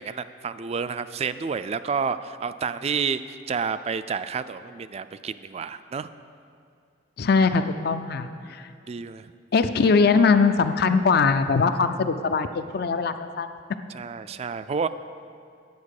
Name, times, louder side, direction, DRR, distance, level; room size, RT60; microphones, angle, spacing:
voice 1, 0.0-6.1 8.4-8.6 8.9-9.3 13.9-14.9, right 5 dB, 35° right, 13 dB, 0.3 m, -30 dB
voice 2, 7.2-8.7 9.5-13.5, left 4 dB, 60° left, 10 dB, 0.5 m, -21 dB
9.5 x 8.1 x 6.5 m, 2.4 s
head